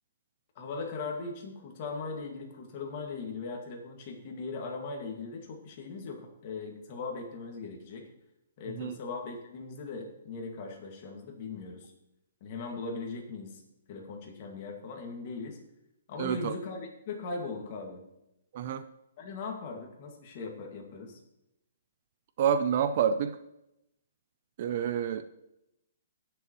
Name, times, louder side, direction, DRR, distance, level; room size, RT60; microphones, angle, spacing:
voice 1, 0.6-8.0 8.6-11.9 12.4-13.6 13.9-15.6 16.1-16.8 17.1-18.0 19.2-21.2, left 4 dB, 30° left, 1 dB, 2.0 m, -39 dB
voice 2, 16.2-16.6 18.5-18.8 22.4-23.4 24.6-25.2, right 8 dB, 35° right, 11 dB, 0.5 m, -28 dB
18.0 x 6.8 x 3.1 m, 0.86 s
hypercardioid pair, 170°, 0 cm